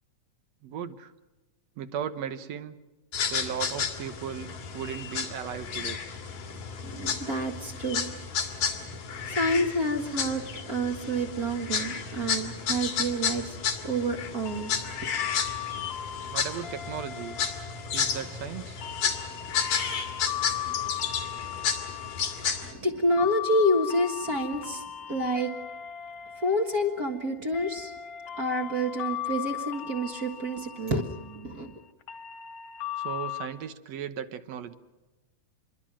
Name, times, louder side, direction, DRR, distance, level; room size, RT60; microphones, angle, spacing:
voice 1, 0.6-1.1 1.8-2.8 3.3-6.0 16.3-17.4 17.9-18.8 33.0-34.7, right 8 dB, 65° right, 11 dB, 2.0 m, -36 dB
sound 1, 3.1-22.7, left 6 dB, 85° left, 4.1 m, -32 dB
voice 2, 6.8-8.1 9.3-13.6 13.8-14.7 22.6-25.5 26.4-27.9 28.4-31.8, equal, 40° right, 4 dB, 1.6 m, -28 dB
sound 2, 14.5-33.5, left 11 dB, 65° left, 2.0 m, -38 dB
27.0 x 22.0 x 6.2 m, 1.1 s
omnidirectional pair, 3.8 m